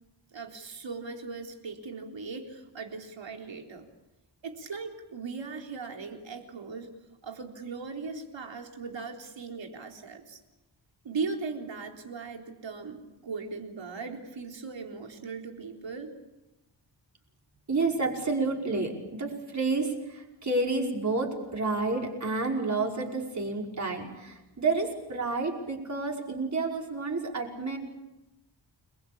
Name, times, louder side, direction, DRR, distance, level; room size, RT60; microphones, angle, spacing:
voice 1, 0.3-3.9 4.4-6.9 7.2-10.4 11.0-16.1, right 4 dB, 80° right, 3 dB, 4.1 m, -38 dB
voice 2, 17.7-27.8, right 3 dB, 40° right, 0 dB, 5.3 m, -30 dB
29.5 x 21.5 x 8.8 m, 1.0 s
wide cardioid pair, 155°, 44 cm